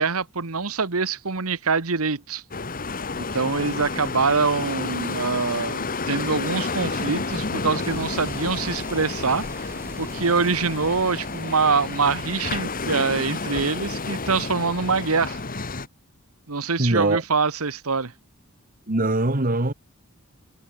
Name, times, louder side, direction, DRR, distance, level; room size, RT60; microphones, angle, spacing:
voice 1, 0.0-2.4 3.2-15.4 16.5-18.1, right 4 dB, 70° right, 1.4 m, -24 dB
sound 1, 2.5-15.9, left 3 dB, 40° left, 1.8 m, -30 dB
sound 2, 7.8-13.0, right 1 dB, 10° right, 1.5 m, -43 dB
voice 2, 16.8-17.2 18.9-19.7, right 2 dB, 40° right, 2.0 m, -22 dB
head